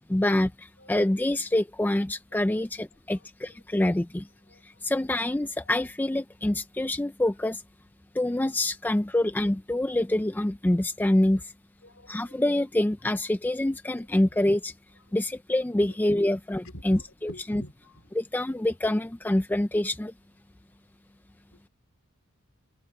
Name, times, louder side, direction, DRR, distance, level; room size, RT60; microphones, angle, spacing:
voice 1, 0.1-4.3 4.6-7.6 8.1-11.5 12.1-14.7 15.1-17.6 18.1-20.1, left 1 dB, 10° left, 0.3 m, -26 dB
voice 2, 4.5-4.8 11.3-11.4 11.8-12.4 15.8-15.9 16.6-18.1 21.5-21.6, equal, 60° left, 3.6 m, -46 dB
head